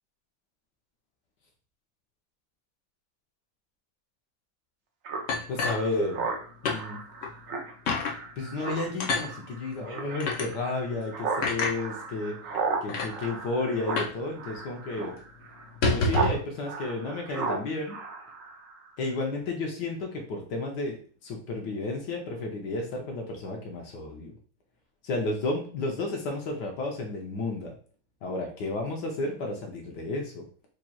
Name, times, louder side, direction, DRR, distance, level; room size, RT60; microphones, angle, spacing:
Speech synthesizer, 5.0-16.4 16.7-18.9, right 4 dB, 70° right, 0.7 m, -35 dB
sound 1, 5.3-6.4 6.6-6.8 7.2-7.3 7.9-8.2 9.0-9.3 10.2-10.5 11.4-11.8 12.5-12.6 12.9-13.1 14.0-14.2 14.5-14.6 14.9-15.1 15.6-16.4, left 3 dB, 80° left, 0.6 m, -27 dB
voice 1, 5.5-6.3 6.6-7.0 8.4-12.4 12.8-15.1 15.9-18.0 19.0-21.0 21.2-24.3 25.0-27.7 28.2-30.4, left 2 dB, 65° left, 1 dB, 1.2 m, -32 dB
5.0 x 3.0 x 2.3 m, 0.42 s
omnidirectional pair, 2.2 m